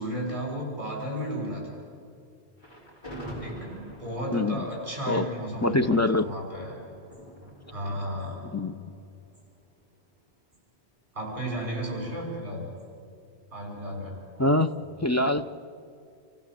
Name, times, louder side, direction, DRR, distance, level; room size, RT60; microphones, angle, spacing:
voice 1, 0.0-1.8 3.4-6.8 7.7-8.4 11.1-12.7 13.5-14.1, equal, 50° right, -2 dB, 6.0 m, -34 dB
Thunder, 2.6-9.8, equal, 45° left, 4.4 m, -44 dB
voice 2, 4.3-4.7 5.1-5.3 5.6-6.3 8.5-8.8 14.4-14.7 15.0-15.5, left 2 dB, 25° left, 7 dB, 0.4 m, -24 dB
27.5 x 15.5 x 7.5 m, 2.4 s
omnidirectional pair, 1.1 m